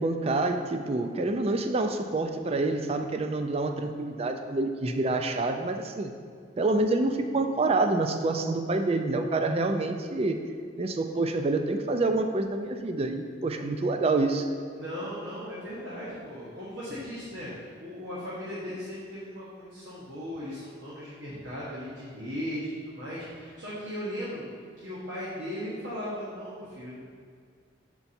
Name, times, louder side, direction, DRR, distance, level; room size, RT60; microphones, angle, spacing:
voice 1, 0.0-6.1 6.6-10.4 10.8-14.5, right 2 dB, 30° right, 6 dB, 0.4 m, -27 dB
voice 2, 14.7-24.5 24.8-27.0, equal, 70° right, -8 dB, 1.2 m, -37 dB
6.7 x 4.6 x 4.2 m, 2.1 s
head